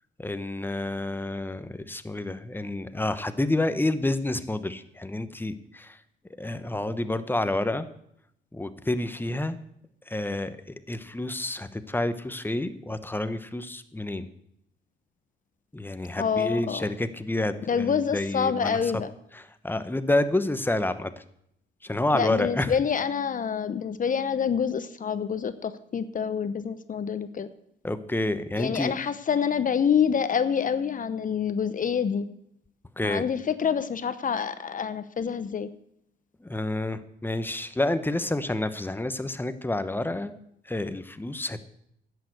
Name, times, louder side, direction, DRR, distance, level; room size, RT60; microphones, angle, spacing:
voice 1, 0.2-6.0 6.4-7.9 8.5-9.6 10.1-10.6 10.9-14.3 15.7-18.8 19.3-21.1 21.8-22.8 27.8-28.9 33.0-33.2 36.4-40.4 40.6-41.6, left 2 dB, 10° left, 11 dB, 1.0 m, -29 dB
voice 2, 16.2-16.9 17.7-19.1 22.1-27.5 28.6-32.3 33.0-35.7, left 7 dB, 40° left, 12 dB, 0.8 m, -27 dB
11.0 x 8.5 x 7.9 m, 0.73 s
cardioid pair, 90°, 20 cm